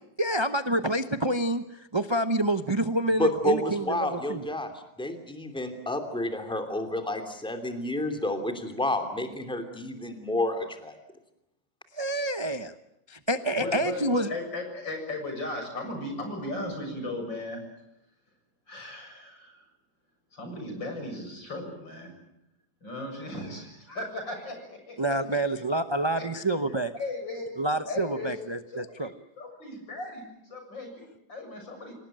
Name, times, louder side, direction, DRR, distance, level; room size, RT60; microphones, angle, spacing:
voice 1, 0.2-4.5 11.9-12.7 13.1-14.3 25.0-26.9 27.6-29.1, right 1 dB, 30° right, 9 dB, 0.5 m, -27 dB
voice 2, 3.2-4.7 5.0-10.9, left 1 dB, 5° left, 7 dB, 2.8 m, -30 dB
voice 3, 13.6-17.6 18.7-19.7 20.3-22.1 22.8-25.6 26.2-26.4 26.9-27.5 27.8-28.3 28.7-29.1 29.4-31.9, left 2 dB, 75° left, 3 dB, 7.8 m, -37 dB
27.5 x 18.5 x 9.0 m, 0.86 s
omnidirectional pair, 2.0 m